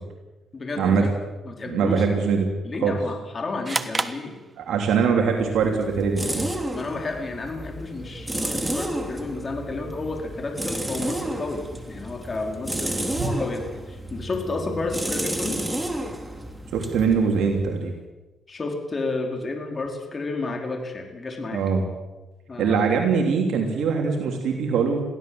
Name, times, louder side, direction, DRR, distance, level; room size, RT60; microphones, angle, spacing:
voice 1, 0.5-1.1 1.4-2.1 2.6-4.4 6.7-15.6 18.5-21.6 22.5-22.9, left 3 dB, 35° left, 3 dB, 4.6 m, -31 dB
voice 2, 1.7-2.5 2.8-2.9 4.6-6.5 13.2-13.3 16.7-17.9 21.5-21.8 22.6-25.0, right 5 dB, 75° right, 2 dB, 3.2 m, -22 dB
sound 1, 3.6-5.1, right 3 dB, 25° right, 1.3 m, -30 dB
sound 2, 5.2-17.9, right 1 dB, 10° right, 3.1 m, -32 dB
22.5 x 16.0 x 7.9 m, 1.1 s
cardioid pair, 90°, 0 cm